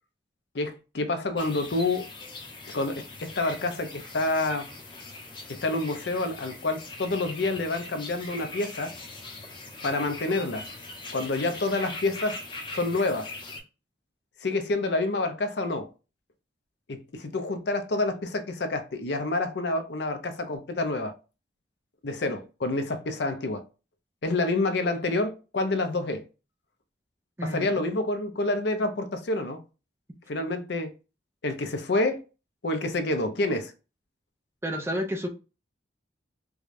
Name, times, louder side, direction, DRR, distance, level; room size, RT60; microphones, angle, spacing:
voice 1, 0.5-2.1 2.7-3.0 3.4-4.7 5.5-8.9 9.8-10.6 11.1-12.4 12.7-13.3 14.4-15.9 16.9-21.1 22.0-23.6 24.2-26.3 27.4-29.6 30.3-30.9 31.4-32.2 32.6-33.7, left 2 dB, 65° left, 0.6 m, -28 dB
sound 1, 1.4-13.6, left 2 dB, 25° left, 0.8 m, -41 dB
voice 2, 27.4-27.8 34.6-35.3, equal, 15° right, 0.5 m, -30 dB
4.7 x 2.3 x 2.5 m
head